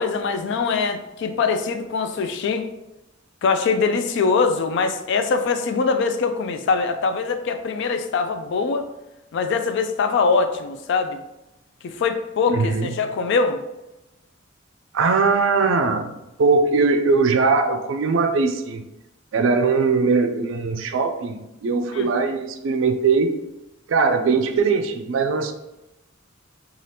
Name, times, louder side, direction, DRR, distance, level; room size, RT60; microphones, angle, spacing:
voice 1, 0.0-2.7 3.4-8.9 9.3-11.2 11.8-13.6 21.9-22.1, left 4 dB, 60° left, 8 dB, 0.3 m, -22 dB
voice 2, 12.5-12.9 14.9-16.1 16.4-18.8 19.3-23.3 23.9-25.5, right 4 dB, 70° right, 7 dB, 0.4 m, -20 dB
2.7 x 2.4 x 3.3 m, 0.93 s
head